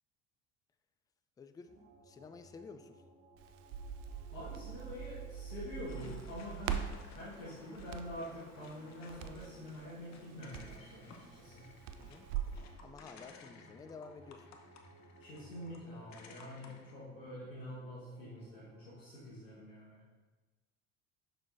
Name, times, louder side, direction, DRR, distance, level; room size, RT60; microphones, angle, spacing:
voice 1, 1.4-1.7 2.0-3.0 12.0-12.3 12.8-14.5, left 4 dB, 10° left, 9 dB, 0.3 m, -51 dB
sound 1, 1.7-19.0, right 2 dB, 55° right, 1.5 m, -61 dB
Crackle, 3.4-12.6, right 9 dB, 75° right, 0.5 m, -43 dB
voice 2, 4.3-11.7 15.2-20.0, left 1 dB, 85° left, -10 dB, 1.4 m, -46 dB
sound 2, 5.9-17.0, left 5 dB, 45° left, 0.9 m, -58 dB
6.5 x 6.1 x 2.5 m, 1.3 s
hypercardioid pair, 65°, 38 cm